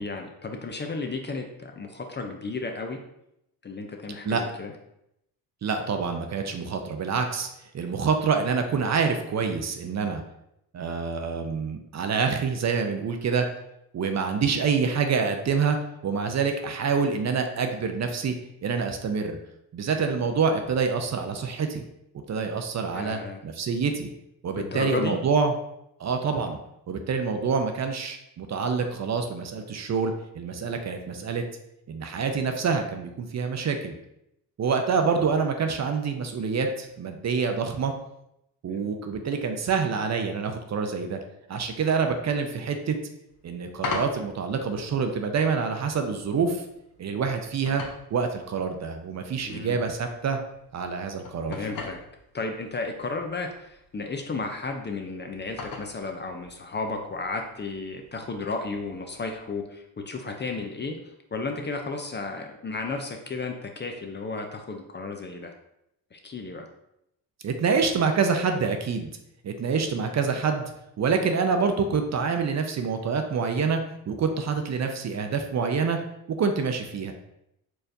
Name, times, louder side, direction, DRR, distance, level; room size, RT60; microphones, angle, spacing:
voice 1, 0.0-3.0 3.6-4.7 22.9-23.4 24.6-25.2 38.7-38.9 49.4-49.8 51.5-52.0 52.3-65.5 66.1-66.7, left 3 dB, 25° left, 4 dB, 0.5 m, -33 dB
voice 2, 5.6-7.5 7.7-10.2 10.7-13.5 13.9-15.8 16.0-18.3 18.6-19.4 19.7-21.8 22.3-24.1 24.4-25.5 26.0-26.6 26.9-31.4 31.9-33.9 34.6-37.9 38.6-41.2 41.5-43.0 43.4-46.6 47.0-47.8 48.1-50.4 50.7-51.7 67.4-69.1 69.4-70.6 71.0-73.8 74.1-76.0 76.3-77.1, right 5 dB, 40° right, 5 dB, 0.6 m, -26 dB
sound 1, 43.3-59.6, left 4 dB, 50° left, 0.9 m, -43 dB
4.5 x 3.2 x 2.6 m, 0.81 s
supercardioid pair, 65°, 43 cm